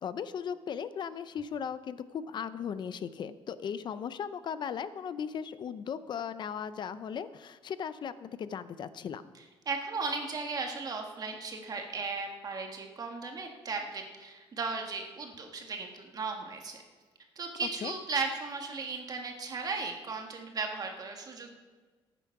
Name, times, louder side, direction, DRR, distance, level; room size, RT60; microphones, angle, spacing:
voice 1, 0.0-9.3 17.8-17.9, left 7 dB, 45° left, 14 dB, 0.6 m, -37 dB
voice 2, 9.6-16.8 17.3-21.6, right 4 dB, 40° right, 3 dB, 1.7 m, -36 dB
14.0 x 9.1 x 5.9 m, 1.4 s
cardioid pair, 135°, 10 cm